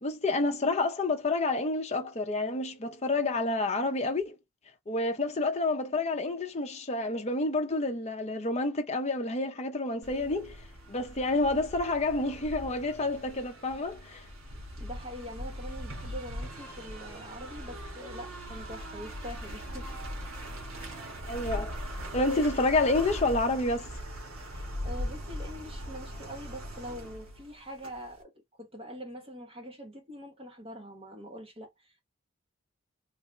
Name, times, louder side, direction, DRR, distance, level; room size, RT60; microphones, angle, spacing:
voice 1, 0.0-4.4 4.9-14.3 21.3-21.7 22.1-23.9, left 2 dB, 30° left, 0.6 m, -29 dB
sound 1, 10.0-28.2, equal, 80° right, 1.3 m, -40 dB
voice 2, 14.8-20.1 24.8-32.0, equal, 25° right, 1.3 m, -44 dB
3.3 x 2.8 x 3.1 m
head